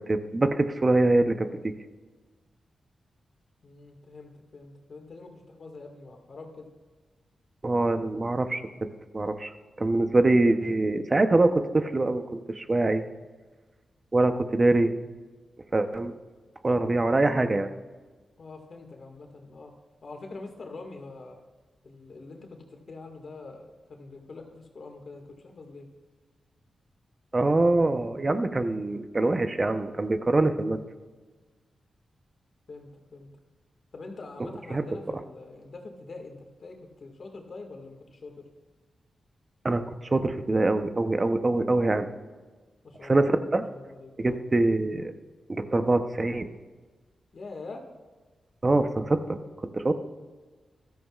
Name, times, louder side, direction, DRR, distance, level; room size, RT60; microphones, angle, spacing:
voice 1, 0.1-1.7 7.6-8.9 9.1-9.5 9.8-13.0 14.1-14.9 15.7-16.1 16.6-17.7 27.3-30.8 34.7-34.8 39.6-42.1 43.0-43.6 44.2-45.1 45.5-46.5 48.6-49.4 49.7-49.9, right 2 dB, 35° right, 9 dB, 0.9 m, -24 dB
voice 2, 3.6-6.7 18.4-19.7 20.0-21.4 21.8-25.9 32.7-33.3 33.9-38.5 42.8-43.3 43.7-44.7 47.3-47.8, left 3 dB, 60° left, 3 dB, 2.0 m, -44 dB
14.0 x 13.0 x 2.5 m, 1.3 s
cardioid pair, 55°, 0 cm